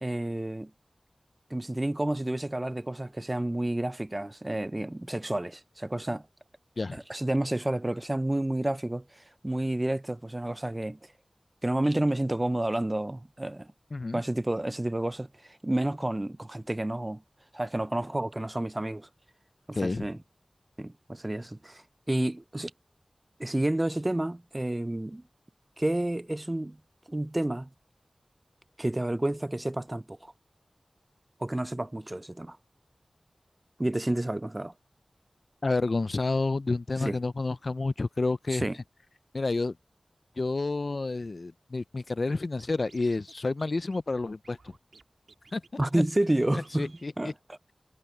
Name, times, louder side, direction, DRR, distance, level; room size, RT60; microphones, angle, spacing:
voice 1, 0.0-0.7 1.5-6.2 6.9-9.0 9.4-11.0 11.6-13.7 14.1-15.3 15.6-17.2 17.5-19.1 19.7-20.2 20.8-22.7 23.4-25.2 25.8-26.8 27.1-27.7 28.8-30.3 31.4-32.6 33.8-34.7 37.0-37.2 38.5-38.8 45.8-47.3, right 1 dB, 25° right, 0.4 m, -30 dB
voice 2, 13.9-14.2 19.7-20.1 35.6-38.7 39.3-39.7 40.4-44.6 45.5-45.6 45.9-46.0 46.5-47.3, left 3 dB, 60° left, 0.4 m, -29 dB
Scratching (performance technique), 42.3-42.4 42.6-43.3 43.6-43.7 43.9-45.0 45.3-45.7 45.9-46.0 46.3-46.4 46.6-47.1, right 3 dB, 85° right, 1.9 m, -55 dB
wide cardioid pair, 65°, 0 cm